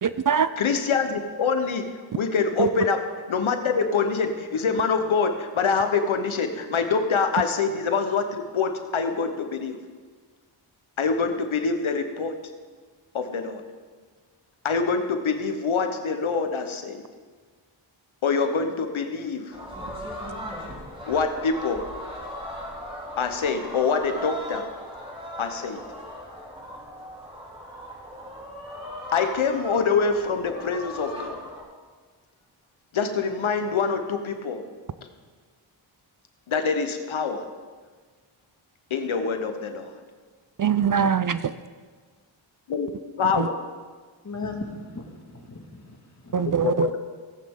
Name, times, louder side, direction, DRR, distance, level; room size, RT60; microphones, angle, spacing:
voice 1, 0.0-0.5 2.6-2.7 40.6-41.5 43.4-43.5 46.3-46.9, right 7 dB, 45° right, 14 dB, 0.5 m, -22 dB
voice 2, 0.6-1.8 2.1-3.0 3.3-9.8 11.0-12.3 13.1-13.6 14.6-17.0 18.2-19.4 21.1-21.8 23.2-24.6 25.4-25.8 29.1-31.4 32.9-34.6 36.5-37.4 38.9-39.9 42.7-42.9 43.2-43.5 46.6-47.0, left 5 dB, 75° left, 7 dB, 1.2 m, -25 dB
sound 1, 19.5-31.6, equal, 10° right, 4.2 m, -38 dB
voice 3, 44.2-46.4, left 3 dB, 35° left, 2 dB, 2.0 m, -37 dB
17.5 x 9.3 x 3.8 m, 1.5 s
cardioid pair, 60°, 48 cm